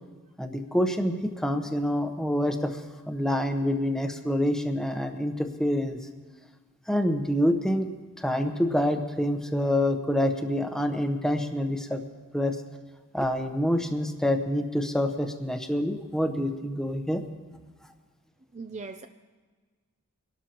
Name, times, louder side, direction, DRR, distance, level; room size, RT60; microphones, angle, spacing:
voice 1, 0.4-2.8 3.1-6.0 6.9-7.9 8.2-12.0 12.3-12.6 13.1-17.2, left 1 dB, 5° left, 5 dB, 0.9 m, -26 dB
voice 2, 18.5-19.1, right 4 dB, 30° right, 7 dB, 0.5 m, -39 dB
24.0 x 12.5 x 3.0 m, 1.4 s
head